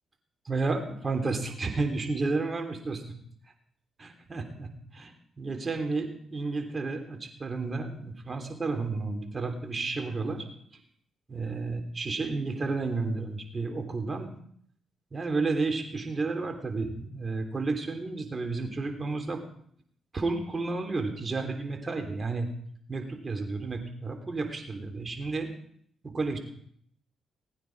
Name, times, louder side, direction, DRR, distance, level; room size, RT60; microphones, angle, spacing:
voice 1, 0.4-3.0 4.0-10.5 11.3-14.3 15.1-19.4 20.1-22.5 22.9-25.5 26.0-26.4, right 3 dB, 40° right, 4 dB, 3.3 m, -31 dB
20.5 x 9.2 x 4.8 m, 0.65 s
hypercardioid pair, 45°, 0 cm